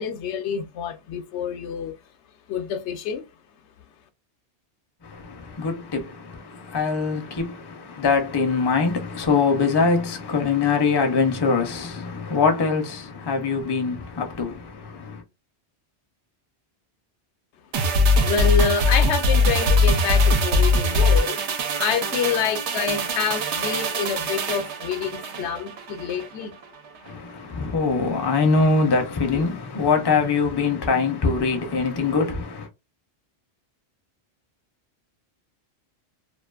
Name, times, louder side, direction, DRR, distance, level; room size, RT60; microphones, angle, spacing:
voice 1, 0.0-1.9 2.5-3.2 18.2-21.4 21.8-26.5, left 7 dB, 85° left, 0.9 m, -27 dB
voice 2, 5.0-15.2 27.0-32.7, left 4 dB, 30° left, 0.4 m, -23 dB
sound 1, 17.7-26.3 26.6-26.7, left 1 dB, 85° right, 0.9 m, -22 dB
2.5 x 2.3 x 2.3 m
omnidirectional pair, 1.2 m